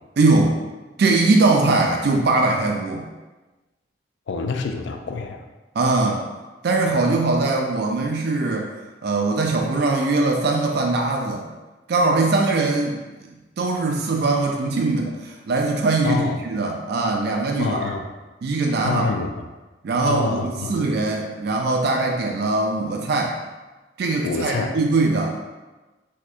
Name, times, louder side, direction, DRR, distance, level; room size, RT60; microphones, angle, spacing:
voice 1, 0.2-0.6 1.0-3.1 5.7-6.3 6.6-8.7 9.0-11.4 11.9-13.0 13.6-17.9 18.4-19.1 19.8-23.4 24.0-25.4, right 3 dB, 60° right, 1 dB, 0.4 m, -21 dB
voice 2, 4.3-5.4 16.0-16.4 17.6-18.0 18.8-19.5 20.0-20.8 24.2-24.7, left 4 dB, 75° left, 5 dB, 0.4 m, -26 dB
4.2 x 2.8 x 2.4 m, 1.2 s
head